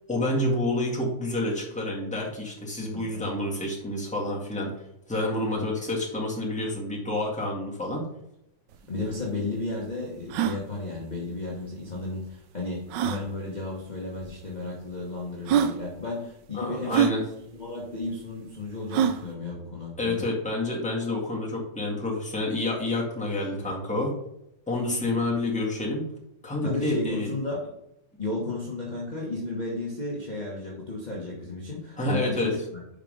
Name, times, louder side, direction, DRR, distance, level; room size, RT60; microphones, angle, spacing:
voice 1, 0.1-4.7 5.1-8.0 16.5-17.2 20.0-24.1 24.7-26.0 26.4-27.3 32.0-32.5, left 2 dB, 5° left, -4 dB, 1.6 m, -28 dB
voice 2, 2.8-3.3 5.5-5.7 8.9-17.0 17.5-20.2 26.6-27.6 28.2-32.8, left 2 dB, 25° left, -4 dB, 1.3 m, -34 dB
sound 1, 8.7-8.8 9.0-9.1 9.6-9.7 10.2-10.6 11.9-12.0 12.9-13.2 14.2-14.3 15.0-15.1 15.5-15.8 16.9-17.2 18.9-19.2, right 9 dB, 75° right, 1.2 m, -24 dB
5.4 x 5.2 x 5.3 m, 0.80 s
omnidirectional pair, 2.2 m